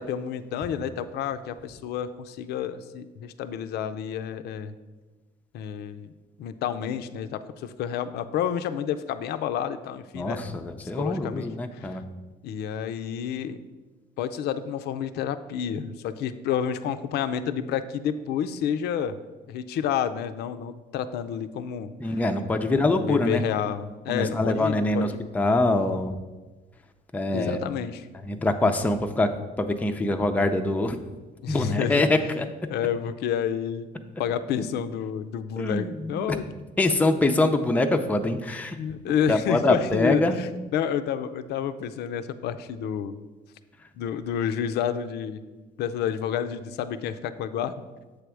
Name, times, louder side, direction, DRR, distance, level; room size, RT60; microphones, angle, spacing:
voice 1, 0.0-4.7 5.5-6.1 6.4-10.6 11.0-12.0 12.4-13.6 14.2-19.2 19.5-22.2 22.6-25.2 27.3-28.1 28.4-28.5 31.4-32.1 32.7-33.9 34.2-36.5 38.8-43.2 44.0-45.4 45.8-47.7, left 8 dB, 75° left, 11 dB, 0.5 m, -30 dB
voice 2, 10.1-12.0 22.0-23.4 24.1-26.2 27.1-27.6 28.2-29.3 29.6-31.0 31.5-32.5 35.6-36.3 36.8-38.8 39.3-40.4, left 2 dB, 10° left, 5 dB, 0.5 m, -24 dB
7.7 x 3.4 x 6.2 m, 1.2 s
cardioid pair, 110°, 17 cm